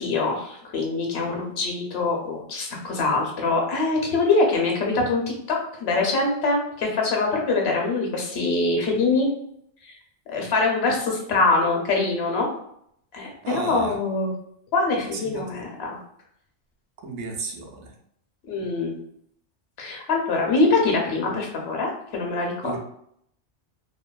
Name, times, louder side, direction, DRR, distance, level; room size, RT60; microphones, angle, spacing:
voice 1, 0.0-5.2 5.5-9.3 9.9-10.0 10.3-12.5 13.1-14.3 14.7-16.0 18.5-18.9 19.8-22.8, left 3 dB, 65° left, 0 dB, 0.8 m, -24 dB
voice 2, 13.4-14.0 15.1-15.6 17.0-17.9 22.6-22.8, right 3 dB, 75° right, 1 dB, 0.9 m, -33 dB
2.7 x 2.2 x 2.2 m, 0.70 s
omnidirectional pair, 1.2 m